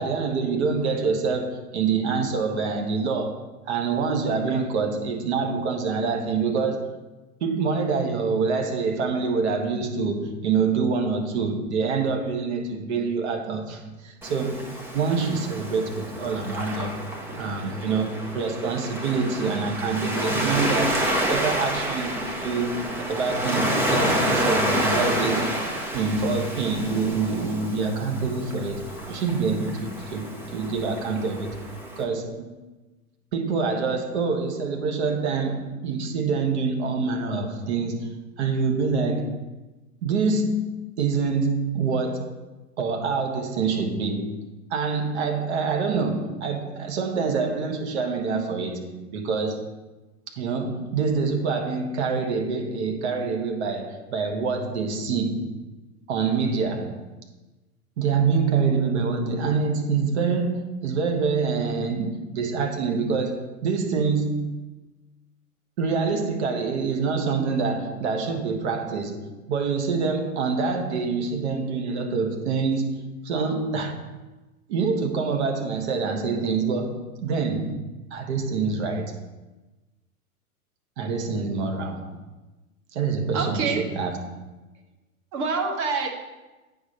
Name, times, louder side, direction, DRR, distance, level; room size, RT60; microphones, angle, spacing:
voice 1, 0.0-3.4 3.7-6.9 7.4-14.6 14.9-17.0 17.4-25.4 25.9-31.6 32.0-32.5 33.3-38.1 38.4-39.4 40.0-42.4 42.8-44.4 44.7-49.7 50.4-55.5 56.1-57.0 58.0-64.5 65.8-74.0 74.7-77.8 78.1-79.1 81.0-82.1 82.9-84.2, right 4 dB, 45° right, 3 dB, 1.3 m, -26 dB
Waves surf, 14.2-32.0, equal, 5° right, 0.6 m, -29 dB
voice 2, 83.3-83.8 85.3-86.1, right 4 dB, 30° right, 2 dB, 1.3 m, -26 dB
8.5 x 5.3 x 4.2 m, 1.1 s
figure-of-eight pair, 110°, 45 cm